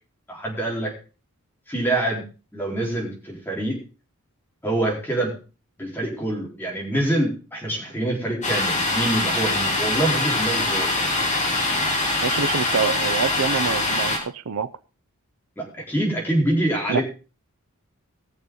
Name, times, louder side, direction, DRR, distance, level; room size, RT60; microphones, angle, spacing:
voice 1, 0.3-0.9 1.7-2.2 2.5-3.8 4.6-5.4 5.8-10.9 15.6-17.0, right 1 dB, 10° left, -2 dB, 4.1 m, -25 dB
Domestic sounds home sounds, 8.4-14.2, left 2 dB, 35° left, 3.7 m, -23 dB
voice 2, 12.2-14.7 16.9-17.0, right 6 dB, 75° right, 15 dB, 0.6 m, -26 dB
19.5 x 7.0 x 3.8 m, 0.34 s
head